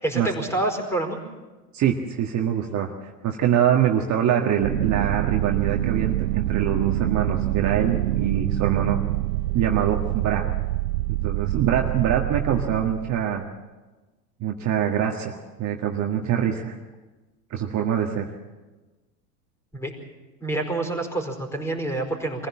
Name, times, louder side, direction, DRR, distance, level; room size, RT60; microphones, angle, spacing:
voice 1, 0.0-1.2 19.7-19.9 20.4-22.5, right 2 dB, 5° left, 4 dB, 4.8 m, -27 dB
voice 2, 1.7-9.0 9.5-10.4 11.1-13.5 14.4-16.8 17.5-18.3, right 9 dB, 35° right, 1 dB, 1.8 m, -24 dB
sound 1, 4.6-13.3, right 15 dB, 80° right, 0.7 m, -26 dB
25.0 x 15.5 x 7.4 m, 1.2 s
hypercardioid pair, 95°, 49 cm